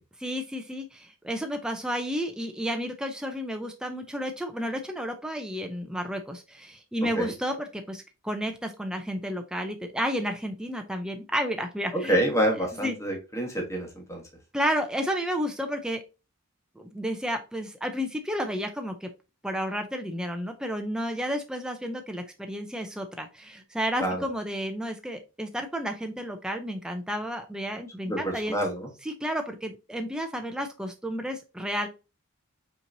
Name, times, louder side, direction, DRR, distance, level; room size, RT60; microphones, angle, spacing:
voice 1, 0.2-12.2 12.8-12.9 14.5-16.0 16.8-19.1 19.4-28.6 29.0-31.9, equal, 5° right, 4 dB, 0.4 m, -31 dB
voice 2, 11.9-14.2 24.0-24.2 28.0-28.9, right 1 dB, 15° left, 0 dB, 1.3 m, -27 dB
5.5 x 3.0 x 2.6 m, 0.29 s
head